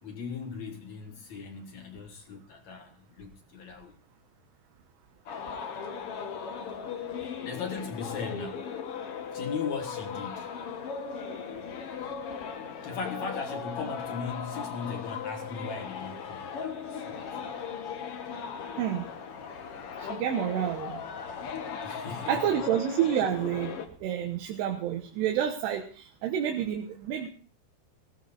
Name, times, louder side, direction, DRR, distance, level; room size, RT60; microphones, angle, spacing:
voice 1, 0.0-3.9 7.4-8.7 9.3-10.5 12.8-17.5 21.8-22.4, left 5 dB, 60° left, 2.0 m, -38 dB
sound 1, 5.3-23.9, left 6 dB, 80° left, 1.3 m, -37 dB
voice 2, 20.0-21.0 22.3-27.3, right 10 dB, 75° right, 3.2 m, -29 dB
19.5 x 16.5 x 2.5 m
omnidirectional pair, 5.0 m